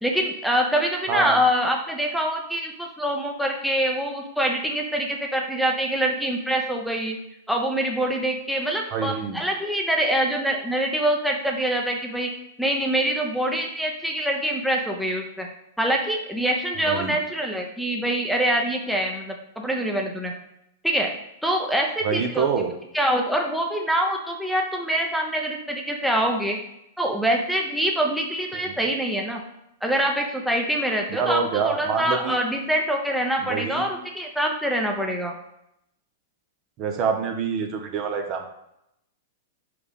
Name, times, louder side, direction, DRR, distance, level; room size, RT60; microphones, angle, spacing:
voice 1, 0.0-7.2 7.5-12.3 12.6-15.5 15.8-20.3 20.8-21.1 21.4-22.4 22.9-26.6 27.0-29.4 29.8-35.3, right 1 dB, ahead, 0 dB, 0.8 m, -25 dB
voice 2, 8.9-9.4 16.8-17.2 22.0-22.7 28.5-28.7 31.1-32.4 33.4-33.9 36.8-38.5, right 6 dB, 40° right, 4 dB, 1.0 m, -26 dB
5.0 x 5.0 x 5.1 m, 0.81 s
hypercardioid pair, 120°, 0 cm